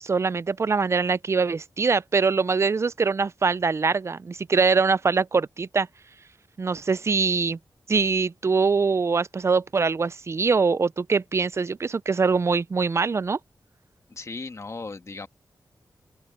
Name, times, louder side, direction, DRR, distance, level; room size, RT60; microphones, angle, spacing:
voice 1, 0.0-5.9 6.6-7.6 7.9-13.4, right 4 dB, 40° right, 0.4 m, -23 dB
voice 2, 14.1-15.3, left 3 dB, 40° left, 1.8 m, -36 dB
open air
wide cardioid pair, 105°, 8 cm